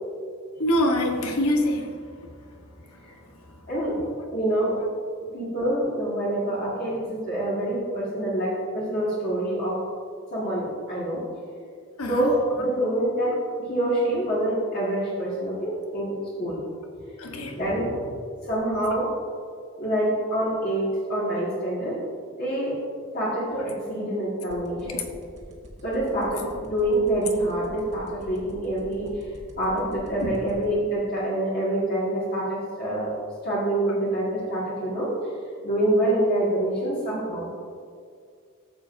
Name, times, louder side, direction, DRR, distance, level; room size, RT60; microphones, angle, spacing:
voice 1, 0.6-2.1 2.9-3.6 4.0-4.3 12.0-12.4 17.2-17.6 24.9-25.0 30.2-30.3, left 1 dB, 90° left, 3 dB, 1.1 m, -26 dB
voice 2, 3.7-4.0 4.3-4.8 5.3-9.8 10.3-11.2 12.1-13.4 13.7-16.6 17.5-17.9 18.5-19.1 19.8-22.0 22.4-22.8 23.1-25.0 25.8-29.1 29.6-33.1 33.4-35.1 35.6-37.5, right 1 dB, 45° left, -8 dB, 1.8 m, -26 dB
sound 1, 24.5-30.6, equal, 30° right, 1.4 m, -46 dB
13.5 x 7.3 x 2.6 m, 2.2 s
head